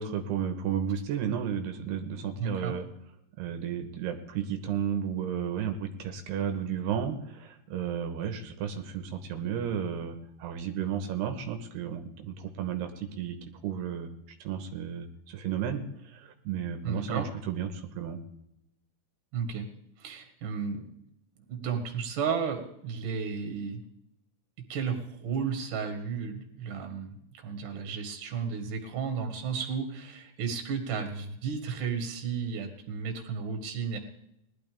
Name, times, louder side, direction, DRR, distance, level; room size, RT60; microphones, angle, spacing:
voice 1, 0.0-2.9 3.4-13.4 13.6-14.1 14.4-18.2, right 8 dB, 75° right, 7 dB, 2.9 m, -33 dB
voice 2, 2.4-2.8 16.8-17.3 19.3-19.7 20.0-20.9 21.5-23.8 24.7-34.0, right 6 dB, 55° right, 5 dB, 2.8 m, -33 dB
20.5 x 12.0 x 3.5 m, 0.78 s
omnidirectional pair, 5.2 m